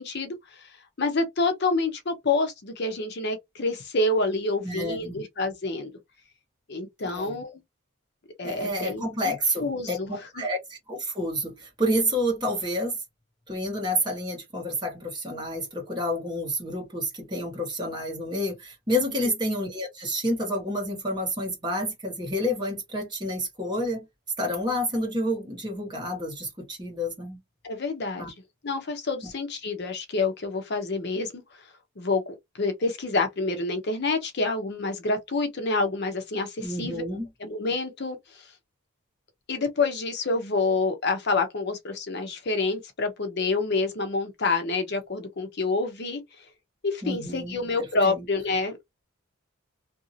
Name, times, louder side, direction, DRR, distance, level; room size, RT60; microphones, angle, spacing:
voice 1, 0.0-5.9 6.7-7.6 8.4-9.3 9.6-10.4 19.1-19.3 27.6-28.3 28.6-31.4 32.0-37.0 37.4-38.5 39.5-46.5 46.8-48.8, left 3 dB, 50° left, 0.7 m, -28 dB
voice 2, 4.6-5.2 7.0-7.4 8.4-13.0 13.5-24.0 24.4-27.4 28.2-28.3 36.6-37.3 47.0-47.6 48.0-48.2, equal, 20° right, 1.2 m, -29 dB
2.8 x 2.6 x 2.6 m
head